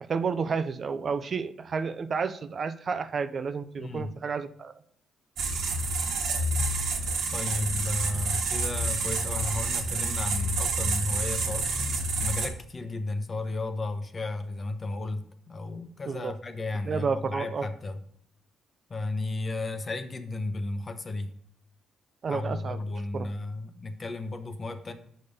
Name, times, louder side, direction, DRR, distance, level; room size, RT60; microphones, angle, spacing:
voice 1, 0.0-4.7 16.1-16.3 16.8-17.7 22.2-22.8 23.1-23.3, right 5 dB, 45° right, 11 dB, 0.5 m, -31 dB
voice 2, 3.8-4.1 7.3-11.7 12.2-18.0 18.9-21.3 22.3-24.9, left 2 dB, 35° left, 8 dB, 1.0 m, -33 dB
sound 1, 5.4-12.5, right 2 dB, 75° right, 1.3 m, -28 dB
6.7 x 5.2 x 5.4 m, 0.64 s
cardioid pair, 90°, 0 cm